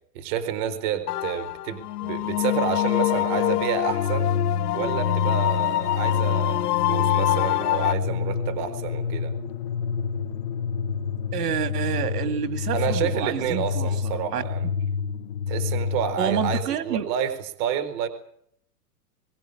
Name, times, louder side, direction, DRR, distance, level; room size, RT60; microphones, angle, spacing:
voice 1, 0.1-4.3 4.7-9.3 12.7-14.7 15.5-17.3 17.6-18.1, right 8 dB, 15° right, 10 dB, 0.8 m, -29 dB
sound 1, 1.1-7.9, left 16 dB, 85° left, 0.8 m, -25 dB
sound 2, 3.8-16.6, left 6 dB, 30° left, 0.8 m, -28 dB
voice 2, 11.3-14.4 16.2-17.1, right 9 dB, 80° right, 9 dB, 2.4 m, -28 dB
20.5 x 16.5 x 8.4 m, 0.70 s
supercardioid pair, 180°, 46 cm